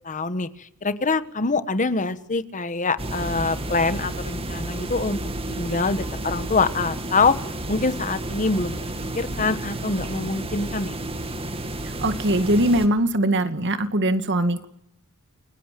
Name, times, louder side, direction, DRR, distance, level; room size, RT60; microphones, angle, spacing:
voice 1, 0.0-5.2 5.5-7.4 7.7-8.8 9.1-10.9, left 3 dB, 35° left, 13 dB, 1.4 m, -24 dB
sound 1, 3.0-12.9, right 1 dB, 25° right, 2.6 m, -31 dB
voice 2, 12.0-14.7, right 1 dB, 55° right, 10 dB, 2.1 m, -21 dB
29.5 x 22.5 x 7.7 m, 0.75 s
head